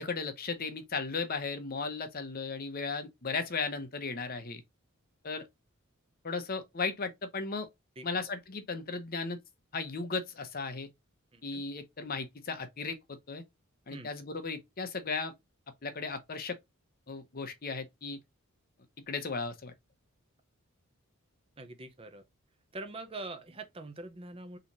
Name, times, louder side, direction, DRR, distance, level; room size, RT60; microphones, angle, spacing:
voice 1, 0.0-4.6 5.2-5.5 6.2-7.7 8.0-9.4 9.7-10.9 11.4-13.4 13.9-15.3 15.8-16.6 17.1-18.2 19.1-19.7, left 4 dB, 40° left, 0.8 m, -36 dB
voice 2, 11.3-11.6 13.9-14.1 21.6-22.2 22.7-24.6, right 2 dB, 25° right, 0.6 m, -44 dB
3.9 x 3.0 x 4.0 m
head